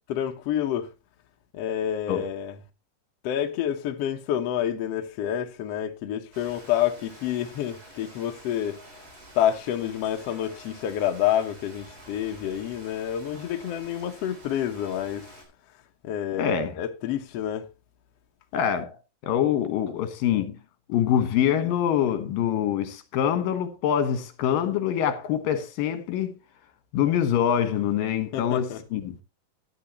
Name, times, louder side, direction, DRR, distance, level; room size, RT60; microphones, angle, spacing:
voice 1, 0.1-0.9 1.5-2.5 3.2-8.8 9.3-15.3 16.0-17.7 28.3-28.8, left 10 dB, 65° left, 1.7 m, -28 dB
Rain, 6.3-15.4, equal, 25° right, 3.8 m, -48 dB
voice 2, 16.4-16.7 18.5-19.0 19.2-20.6 20.9-26.4 26.9-29.2, left 9 dB, 80° left, 3.0 m, -25 dB
14.0 x 9.4 x 3.0 m
omnidirectional pair, 4.0 m